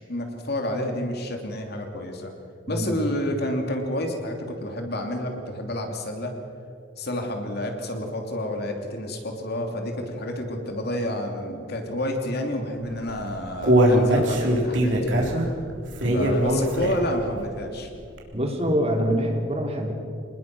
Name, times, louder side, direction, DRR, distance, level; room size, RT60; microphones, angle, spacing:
voice 1, 0.0-2.3 2.7-6.3 7.0-15.3 16.1-17.9, left 1 dB, 55° left, 3 dB, 2.8 m, -29 dB
Human voice, 13.0-17.2 17.6-17.7 18.2-18.3, right 1 dB, 70° right, 3.7 m, -21 dB
voice 2, 18.3-19.9, equal, 35° right, 2 dB, 3.3 m, -25 dB
27.0 x 20.0 x 6.2 m, 2.4 s
head